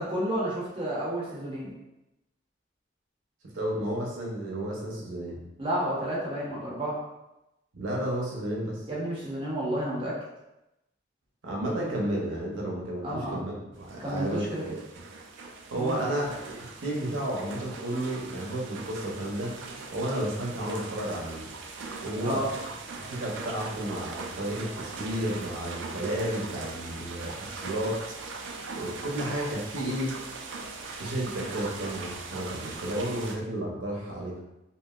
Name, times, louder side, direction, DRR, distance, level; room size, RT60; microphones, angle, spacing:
voice 1, 0.0-1.7 5.6-7.0 8.9-10.1 13.0-13.4 14.0-14.7 15.8-16.1 22.2-22.5, right 1 dB, 25° right, -6 dB, 0.8 m, -31 dB
voice 2, 3.5-5.4 7.7-8.8 11.4-14.7 15.7-19.5 19.9-21.5 22.0-22.4 23.0-28.0 28.8-30.1 31.0-34.4, right 1 dB, 90° right, -2 dB, 0.8 m, -32 dB
sound 1, 13.8-33.4, right 4 dB, 70° right, 0.4 m, -40 dB
3.0 x 2.6 x 2.3 m, 0.94 s
head